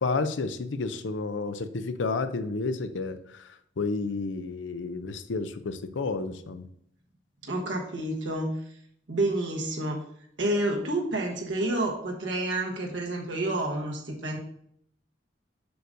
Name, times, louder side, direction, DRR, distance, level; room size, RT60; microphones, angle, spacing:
voice 1, 0.0-3.2 3.8-6.6, left 3 dB, 85° left, 10 dB, 0.6 m, -30 dB
voice 2, 7.4-8.8 9.1-10.0 10.4-14.4, right 1 dB, 80° right, 0 dB, 1.2 m, -29 dB
6.9 x 6.3 x 2.6 m, 0.68 s
head